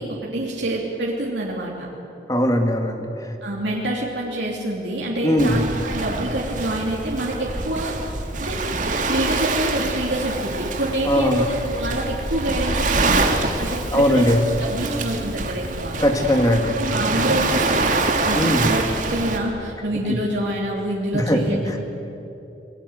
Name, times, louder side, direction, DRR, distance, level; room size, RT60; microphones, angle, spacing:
voice 1, 0.0-1.9 3.4-7.9 8.4-8.6 9.0-14.3 14.6-16.0 16.5-17.9 18.2-21.8, right 1 dB, 90° right, -3 dB, 3.2 m, -27 dB
voice 2, 2.3-3.1 5.2-5.6 11.0-11.4 13.9-14.4 16.0-16.7 18.3-18.7 20.1-20.2 21.1-21.4 21.7-21.8, equal, 20° left, 4 dB, 2.1 m, -19 dB
Waves surf, 5.4-19.4, right 3 dB, 45° right, 2.0 m, -25 dB
27.0 x 20.0 x 8.2 m, 2.9 s
head